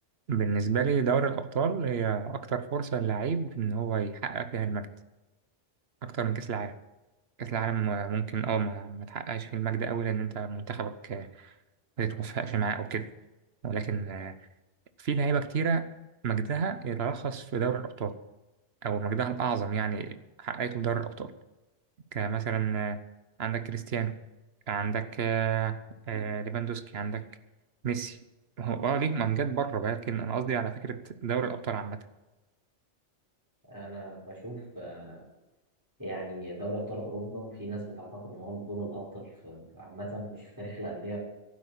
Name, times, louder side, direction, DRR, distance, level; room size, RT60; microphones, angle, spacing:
voice 1, 0.3-4.9 6.0-6.7 7.4-11.5 12.0-13.1 13.6-14.4 15.0-15.9 16.2-18.2 18.8-21.3 22.1-23.0 23.4-24.1 24.7-25.8 26.1-27.2 27.8-28.2 28.6-32.0, right 6 dB, 60° right, 12 dB, 1.2 m, -30 dB
voice 2, 33.7-35.3 36.0-41.2, right 1 dB, 15° right, -4 dB, 5.3 m, -38 dB
11.5 x 9.7 x 8.3 m, 1.1 s
omnidirectional pair, 1.2 m